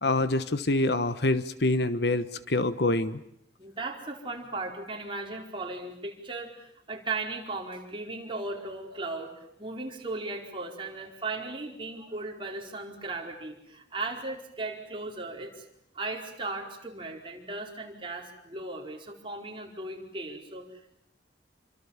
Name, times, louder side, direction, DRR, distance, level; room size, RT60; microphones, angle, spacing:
voice 1, 0.0-3.2, left 2 dB, 65° left, 13 dB, 1.3 m, -26 dB
voice 2, 3.6-15.7 15.9-21.0, right 3 dB, 30° right, 1 dB, 4.7 m, -37 dB
28.0 x 25.5 x 7.3 m, 0.74 s
head